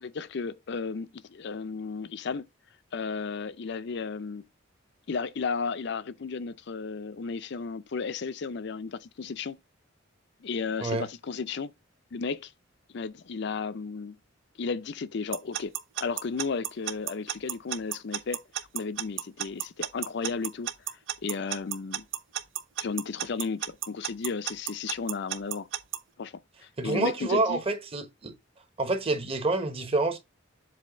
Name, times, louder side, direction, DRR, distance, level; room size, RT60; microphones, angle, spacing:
voice 1, 0.0-2.4 2.9-4.5 5.1-9.6 10.4-11.7 12.1-12.5 12.9-14.2 14.6-15.7 16.0-18.4 18.7-20.7 21.2-22.1 22.8-25.7 26.2-26.3 26.8-27.6, left 4 dB, 60° left, 0.5 m, -34 dB
Alarm / Clock, 15.3-26.0, right 10 dB, 80° right, 0.7 m, -32 dB
voice 2, 26.8-28.3 28.8-30.2, right 2 dB, 30° right, 1.1 m, -27 dB
7.5 x 2.7 x 5.1 m
head